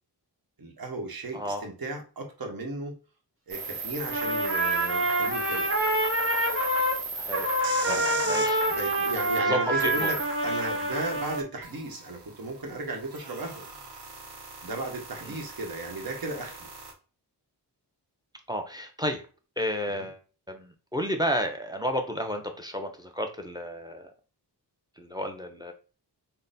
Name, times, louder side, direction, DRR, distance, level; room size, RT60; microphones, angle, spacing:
voice 1, 0.6-2.9 3.5-5.7 7.8-13.7 14.6-16.7 20.0-20.1, right 2 dB, 60° right, 2 dB, 1.2 m, -35 dB
voice 2, 1.3-1.6 7.2-7.5 7.8-8.6 9.5-10.1 15.2-15.4 18.5-19.2 19.6-20.2 20.5-24.1 25.0-25.7, equal, 10° right, 5 dB, 0.6 m, -32 dB
sound 1, 3.5-9.4 9.8-16.9, right 4 dB, 75° right, 1.0 m, -38 dB
Trumpet, 4.0-7.0 7.3-11.4, right 1 dB, 30° right, 1.1 m, -27 dB
3.8 x 2.2 x 4.0 m, 0.35 s
wide cardioid pair, 105°, 41 cm